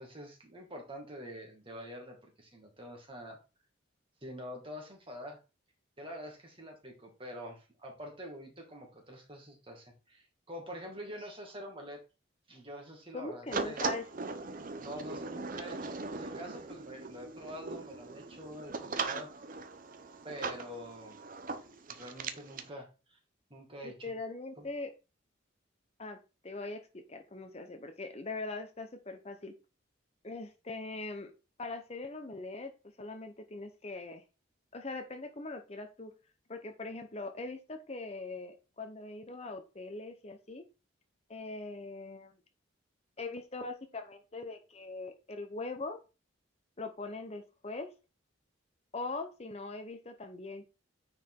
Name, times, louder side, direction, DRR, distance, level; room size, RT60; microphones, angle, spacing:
voice 1, 0.0-3.4 4.2-5.4 6.0-12.0 12.5-13.8 14.8-19.3 20.2-21.2 21.9-23.2 23.5-24.1 24.6-24.7, equal, 25° right, 1 dB, 2.3 m, -46 dB
voice 2, 13.1-14.1 23.8-24.9 26.0-26.2 26.4-29.5 30.2-31.3 31.6-32.7 33.0-34.2 34.7-36.1 36.5-40.6 41.3-42.3 43.2-46.0 46.8-47.9 48.9-50.7, left 3 dB, 30° left, 6 dB, 0.9 m, -41 dB
sound 1, 13.5-22.7, right 4 dB, 45° right, 0.8 m, -39 dB
9.5 x 4.9 x 3.8 m, 0.31 s
head